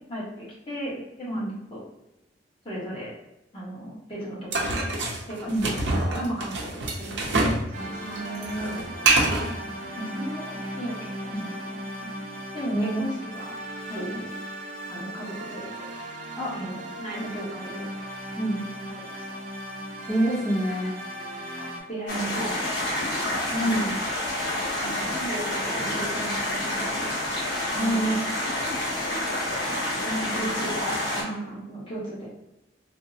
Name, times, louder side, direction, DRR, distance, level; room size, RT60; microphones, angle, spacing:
voice 1, 0.1-1.8 2.6-3.1 3.5-4.9 5.3-9.0 9.5-9.6 10.0-11.4 12.0-12.1 12.5-13.5 13.9-14.3 14.9-15.9 16.5-17.8 18.9-19.2 20.7-20.8 21.5-23.0 23.2-23.5 24.6-27.1 27.7-28.2 28.9-29.7 30.0-32.3, right 1 dB, 30° left, -7 dB, 1.1 m, -36 dB
sound 1, 4.5-7.7 7.9-9.5, right 2 dB, 80° right, 0.6 m, -25 dB
sound 2, 7.7-21.8, equal, 40° right, 0.8 m, -37 dB
voice 2, 12.7-13.0 16.4-16.5 18.4-18.6 20.1-20.9 23.5-24.0 27.8-28.2, right 1 dB, 5° left, -12 dB, 0.9 m, -26 dB
sound 3, 22.1-31.2, left 1 dB, 70° left, 1.0 m, -28 dB
3.4 x 2.1 x 2.7 m, 0.93 s
head